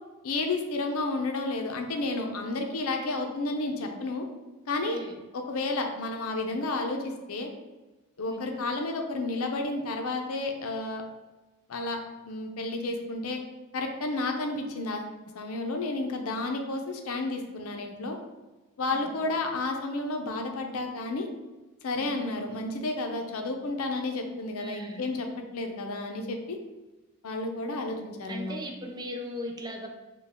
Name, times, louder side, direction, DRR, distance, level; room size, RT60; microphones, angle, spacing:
voice 1, 0.2-4.2 4.7-5.0 5.3-7.5 8.2-11.0 11.7-12.0 12.3-13.4 13.7-18.2 18.8-21.3 21.8-25.3 25.5-26.6 27.2-28.6, left 2 dB, 75° left, 4 dB, 0.6 m, -31 dB
voice 2, 4.8-5.2 8.3-8.7 18.9-19.3 22.0-22.4 24.6-25.1 28.3-29.9, equal, 20° right, 1 dB, 0.5 m, -39 dB
4.3 x 2.3 x 3.5 m, 1.1 s
head